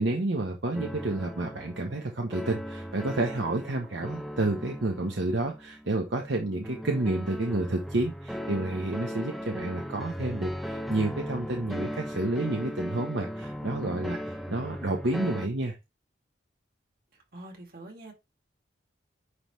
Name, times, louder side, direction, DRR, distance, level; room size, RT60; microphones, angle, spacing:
voice 1, 0.0-15.7, right 2 dB, 70° right, 1.0 m, -30 dB
sound 1, 0.7-15.5, equal, ahead, 0.6 m, -38 dB
voice 2, 17.1-18.1, right 1 dB, 50° right, 2.2 m, -45 dB
9.7 x 3.4 x 3.1 m
head